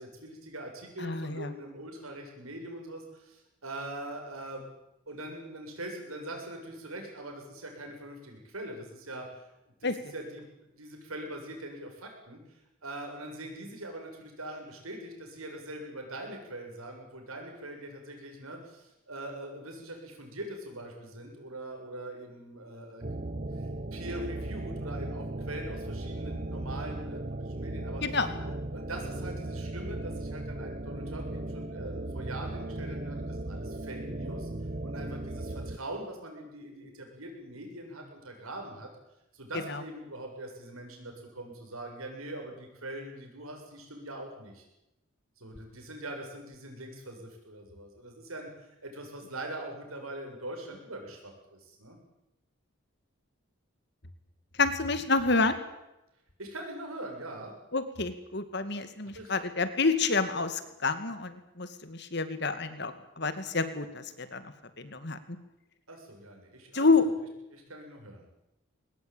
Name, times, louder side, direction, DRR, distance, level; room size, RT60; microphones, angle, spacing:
voice 1, 0.0-4.7 5.1-9.5 9.8-10.4 10.8-23.0 23.5-28.0 28.5-34.5 34.8-38.9 39.3-44.7 45.4-48.5 48.8-52.0 56.4-57.5 59.1-59.3 65.9-66.9 67.5-68.3, right 1 dB, 90° right, 3 dB, 7.6 m, -42 dB
voice 2, 1.0-1.5 9.8-10.0 28.0-28.3 39.7-39.8 54.6-55.6 57.7-64.4 64.8-65.2 66.7-67.0, left 3 dB, 50° left, 11 dB, 2.2 m, -28 dB
sound 1, 23.0-35.8, right 2 dB, 40° right, 1.0 m, -37 dB
22.5 x 20.0 x 9.1 m, 0.89 s
head